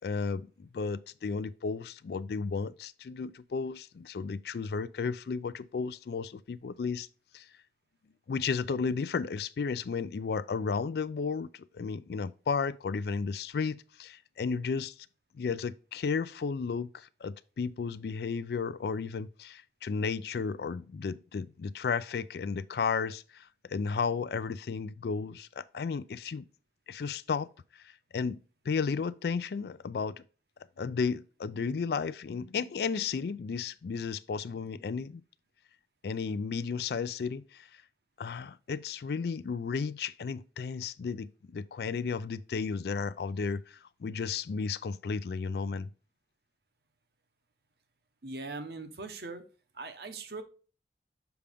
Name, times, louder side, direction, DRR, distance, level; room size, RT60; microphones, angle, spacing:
voice 1, 0.0-7.1 7.3-7.5 8.3-14.9 15.3-26.5 26.9-28.4 28.7-30.2 30.8-35.2 36.0-37.7 38.2-45.9, left 5 dB, 60° left, 0.3 m, -33 dB
voice 2, 48.2-49.4 49.7-50.4, right 3 dB, 60° right, 0.9 m, -40 dB
7.0 x 5.0 x 3.5 m
head